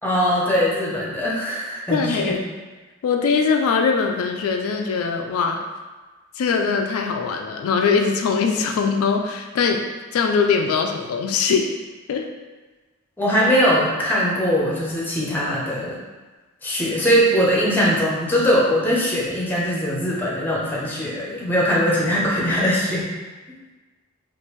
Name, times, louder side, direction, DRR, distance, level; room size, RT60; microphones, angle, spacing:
voice 1, 0.0-2.4 13.2-16.0 16.6-23.1, equal, 10° left, -5 dB, 0.6 m, -21 dB
voice 2, 1.9-2.4 3.0-5.6 6.4-9.8 10.1-11.7 12.1-12.3, left 5 dB, 90° left, 4 dB, 0.3 m, -21 dB
3.2 x 2.4 x 3.0 m, 1.3 s
head